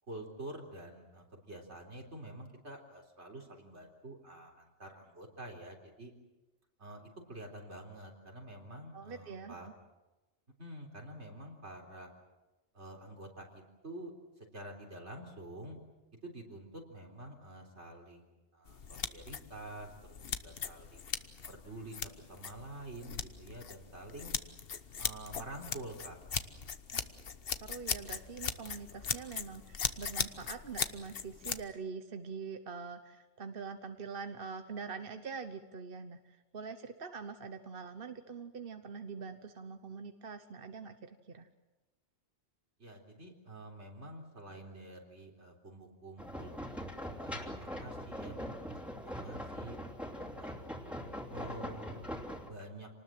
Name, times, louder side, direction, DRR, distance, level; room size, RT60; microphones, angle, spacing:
voice 1, 0.1-6.1 6.8-9.7 10.6-12.1 12.7-15.8 16.2-20.2 20.4-21.0 21.5-24.3 25.0-26.2 42.8-46.7 47.0-49.8 50.2-50.6 51.3-52.1 52.5-52.9, right 1 dB, 80° right, 2 dB, 4.1 m, -48 dB
voice 2, 8.9-9.7 26.9-27.1 27.6-41.5, right 5 dB, 55° right, 8 dB, 1.2 m, -44 dB
sound 1, 18.7-31.6, left 6 dB, 60° left, 1.2 m, -39 dB
sound 2, 46.2-52.5, equal, ahead, 2.9 m, -42 dB
27.5 x 19.5 x 7.7 m, 1.1 s
omnidirectional pair, 1.2 m